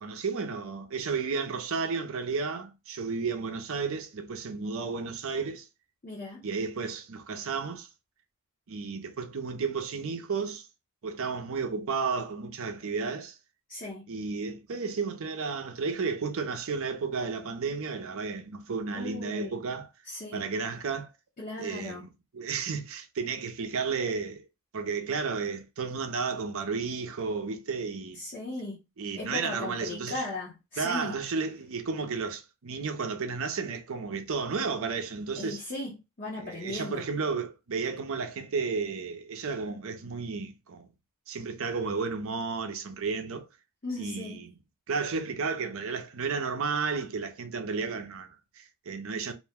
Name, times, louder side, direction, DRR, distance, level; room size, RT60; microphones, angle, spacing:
voice 1, 0.0-5.7 6.4-7.9 8.7-10.7 11.0-13.4 14.1-19.9 20.3-21.1 21.6-22.1 22.3-24.4 24.7-28.2 29.0-30.2 30.8-35.6 36.4-40.9 41.3-43.4 44.0-44.5 44.9-49.3, right 5 dB, 65° right, 0.6 m, -32 dB
voice 2, 6.0-6.4 13.7-14.1 18.9-19.6 20.0-20.5 21.4-22.1 28.1-28.8 29.2-31.2 35.4-37.1 43.8-44.5, left 2 dB, 35° left, 0.7 m, -37 dB
2.5 x 2.1 x 3.4 m
head